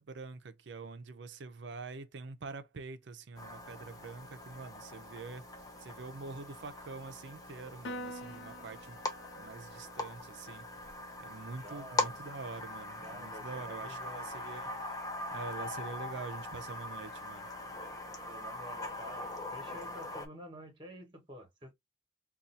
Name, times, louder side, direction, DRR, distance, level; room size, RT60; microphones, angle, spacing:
voice 1, 0.0-5.5 5.8-9.0 9.4-10.7 11.2-14.7 15.3-17.5, right 4 dB, 60° right, 0.5 m, -45 dB
sound 1, 3.4-20.3, left 2 dB, 20° left, 0.5 m, -41 dB
Piano, 7.8-14.5, equal, 70° left, 0.5 m, -50 dB
voice 2, 11.6-12.2 13.0-14.5 18.3-21.7, equal, 25° right, 1.0 m, -49 dB
2.6 x 2.3 x 4.1 m
head